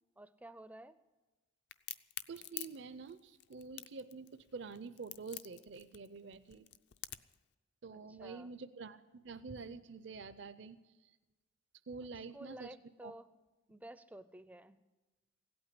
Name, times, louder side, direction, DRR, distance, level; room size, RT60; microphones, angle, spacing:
voice 1, 0.2-1.0 7.9-8.5 12.3-13.3 13.7-14.8, right 1 dB, 5° right, 13 dB, 0.4 m, -52 dB
Crack, 1.7-7.4, left 14 dB, 55° left, 0.5 m, -47 dB
voice 2, 2.3-6.7 7.8-10.8 11.9-12.7 13.0-13.1, right 4 dB, 60° right, 12 dB, 0.5 m, -47 dB
16.5 x 8.7 x 9.9 m, 1.1 s
head